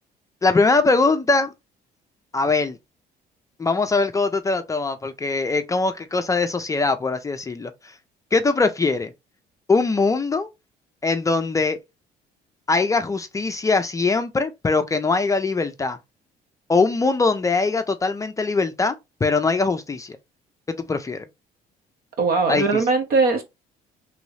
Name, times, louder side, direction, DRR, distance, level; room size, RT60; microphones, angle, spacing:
voice 1, 0.4-1.5 2.3-2.8 3.6-7.7 8.3-9.1 9.7-10.5 11.0-11.8 12.7-16.0 16.7-18.9 19.2-20.2 20.7-21.2 22.5-22.6, left 3 dB, 20° left, 0.4 m, -21 dB
voice 2, 22.2-23.4, right 4 dB, 65° right, 1.0 m, -20 dB
3.1 x 2.6 x 3.1 m
cardioid pair, 110°, 17 cm